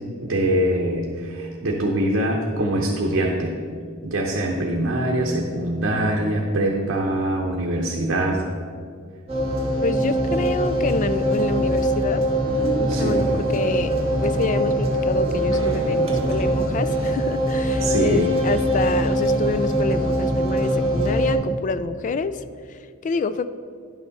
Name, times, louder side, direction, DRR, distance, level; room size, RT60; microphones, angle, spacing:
voice 1, 0.2-3.5 4.0-8.4 12.9-13.2 17.8-18.4, right 1 dB, 65° right, -1 dB, 0.8 m, -23 dB
sound 1, 9.3-21.3, right 1 dB, 30° right, 1.6 m, -22 dB
voice 2, 9.8-12.2 12.8-13.9 14.2-22.4 22.7-23.5, left 4 dB, 40° left, 13 dB, 0.3 m, -27 dB
10.5 x 6.0 x 4.0 m, 2.1 s
head